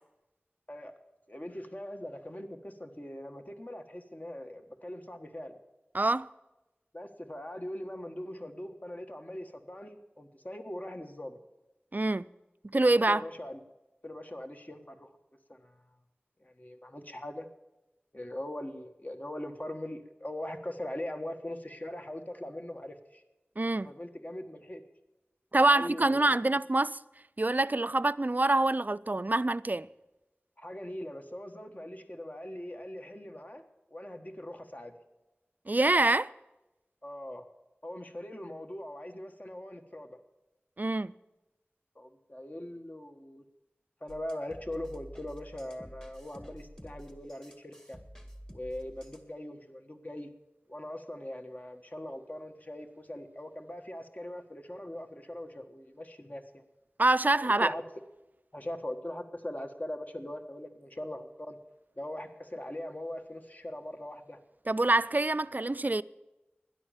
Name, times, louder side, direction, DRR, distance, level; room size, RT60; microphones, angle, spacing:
voice 1, 1.3-5.6 6.9-11.4 13.1-13.6 14.0-15.1 15.5-15.8 16.4-17.5 18.1-23.2 23.8-24.8 25.7-26.4 30.6-33.6 33.9-34.9 37.0-37.5 37.8-40.2 41.9-43.4 44.0-48.0 48.5-50.3 50.7-56.6 57.4-57.8 58.5-61.6 62.0-64.4, left 1 dB, 40° left, 1.4 m, -41 dB
voice 2, 5.9-6.3 11.9-12.3 12.7-13.2 23.6-23.9 25.5-27.0 27.4-29.9 35.7-36.3 40.8-41.1 57.0-57.7 64.7-66.0, right 2 dB, 45° right, 0.4 m, -25 dB
sound 1, 44.1-49.3, equal, 20° left, 1.8 m, -50 dB
12.5 x 10.5 x 7.1 m
wide cardioid pair, 40°, 4 cm